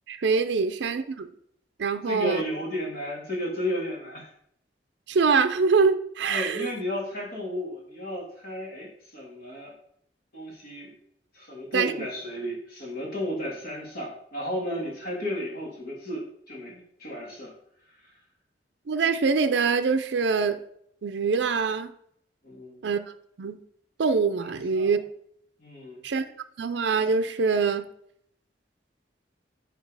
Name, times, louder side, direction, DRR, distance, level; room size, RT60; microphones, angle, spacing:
voice 1, 0.1-1.3 1.8-2.4 5.1-6.7 11.7-12.1 18.9-20.6 21.0-21.9 22.8-23.0 23.4-23.6 24.0-25.0 26.0-26.2 26.6-27.9, right 5 dB, 70° right, 9 dB, 0.5 m, -24 dB
voice 2, 2.1-4.3 6.3-9.7 10.3-10.9 11.3-17.5 22.4-22.8 24.4-24.9 25.6-26.0, left 1 dB, 55° left, -2 dB, 1.9 m, -33 dB
5.1 x 4.6 x 4.8 m, 0.70 s
head